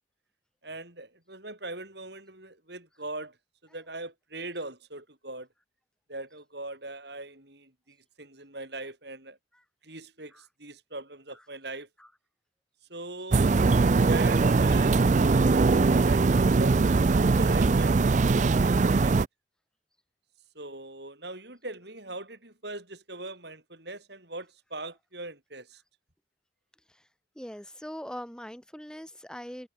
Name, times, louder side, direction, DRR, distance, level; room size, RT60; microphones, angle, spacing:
voice 1, 0.6-3.4 3.7-5.5 6.1-9.4 9.8-11.9 12.9-13.6 14.1-16.9 17.3-19.2 20.6-25.8, right 2 dB, 55° right, 7.3 m, -41 dB
sound 1, 13.3-19.3, right 3 dB, 40° right, 0.4 m, -21 dB
voice 2, 27.3-29.7, equal, 5° left, 2.9 m, -41 dB
head